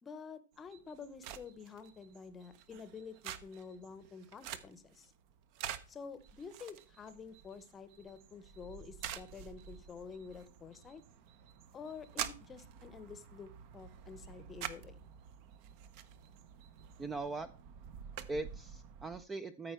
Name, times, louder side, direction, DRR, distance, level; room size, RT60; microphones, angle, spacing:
voice 1, 0.0-5.1 5.9-11.0 11.7-15.1, left 5 dB, 15° left, 13 dB, 0.8 m, -49 dB
sound 1, 0.5-19.2, right 9 dB, 45° right, 0.7 m, -48 dB
voice 2, 17.0-17.5 18.3-19.7, right 3 dB, 10° right, 13 dB, 0.4 m, -40 dB
13.5 x 4.5 x 4.4 m, 0.38 s
hypercardioid pair, 145°, 0 cm